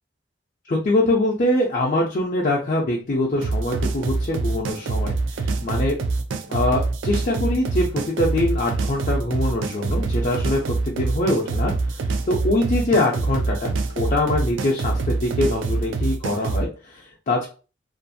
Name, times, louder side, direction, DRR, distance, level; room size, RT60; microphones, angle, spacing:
voice 1, 0.7-6.0 6.5-17.5, left 1 dB, 40° left, -2 dB, 0.4 m, -23 dB
sound 1, 3.4-16.7, right 3 dB, 80° right, 0.4 m, -25 dB
2.5 x 2.3 x 2.6 m, 0.35 s
head